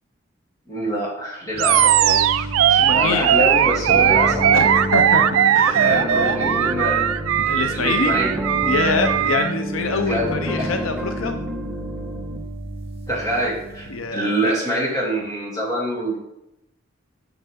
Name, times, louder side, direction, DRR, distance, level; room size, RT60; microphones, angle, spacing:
voice 1, 0.7-4.7 5.7-7.0 7.7-8.3 10.1-10.7 13.1-16.2, right 1 dB, 20° left, -6 dB, 2.8 m, -25 dB
sound 1, 1.5-14.1, right 2 dB, 30° right, 1.5 m, -34 dB
Animal, 1.6-9.5, right 10 dB, 80° right, 0.3 m, -18 dB
voice 2, 2.8-3.3 4.5-6.4 7.5-8.1 8.7-11.3 13.9-14.6, left 3 dB, 90° left, 5 dB, 0.7 m, -25 dB
sound 2, 3.9-12.4, equal, ahead, 0.7 m, -29 dB
8.0 x 5.6 x 3.6 m, 0.85 s
head